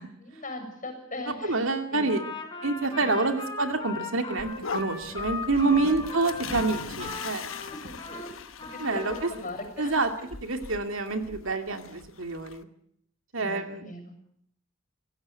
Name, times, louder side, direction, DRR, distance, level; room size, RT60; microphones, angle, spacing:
voice 1, 0.2-1.6 1.9-2.1 3.1-3.2 5.7-6.1 6.5-6.6 7.7-10.0 13.4-14.1, left 2 dB, 40° left, 6 dB, 6.9 m, -40 dB
voice 2, 1.3-2.2 2.6-7.4 8.8-9.3 9.8-10.1 10.4-12.7 13.3-13.9, right 3 dB, 65° right, 6 dB, 2.5 m, -27 dB
Trumpet, 2.1-8.3 8.6-9.3, left 4 dB, 20° left, 4.7 m, -38 dB
sound 1, 4.4-12.6, left 4 dB, 70° left, 1.2 m, -41 dB
26.0 x 16.5 x 8.3 m, 0.71 s
head